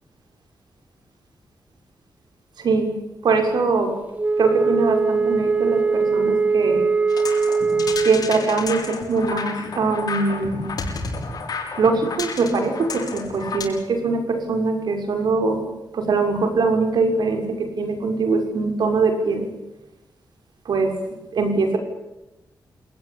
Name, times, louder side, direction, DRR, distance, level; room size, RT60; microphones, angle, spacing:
voice 1, 2.6-2.9 3.2-3.9 4.4-6.9 8.0-10.7 11.8-15.6 15.9-19.5 20.6-20.9 21.3-21.8, right 4 dB, 75° right, 5 dB, 6.3 m, -22 dB
Wind instrument woodwind instrument, 4.1-8.3, right 4 dB, 20° right, 0.9 m, -21 dB
sound 1, 7.1-13.6, left 4 dB, 60° left, 6.8 m, -31 dB
28.0 x 19.5 x 8.8 m, 0.97 s
wide cardioid pair, 140°, 7 cm